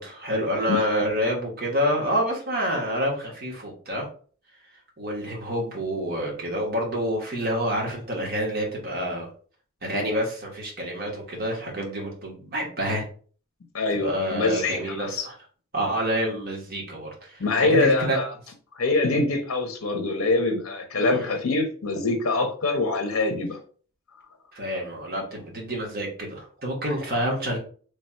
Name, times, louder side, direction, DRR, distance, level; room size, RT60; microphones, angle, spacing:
voice 1, 0.0-4.1 5.0-9.3 9.8-13.0 13.9-15.3 15.7-18.2 20.9-21.4 24.5-27.6, equal, 45° right, -1 dB, 1.2 m, -28 dB
voice 2, 13.7-15.2 17.4-18.3 18.7-23.6 27.1-27.3, left 2 dB, 75° left, 5 dB, 0.6 m, -24 dB
3.2 x 2.3 x 4.2 m, 0.43 s
head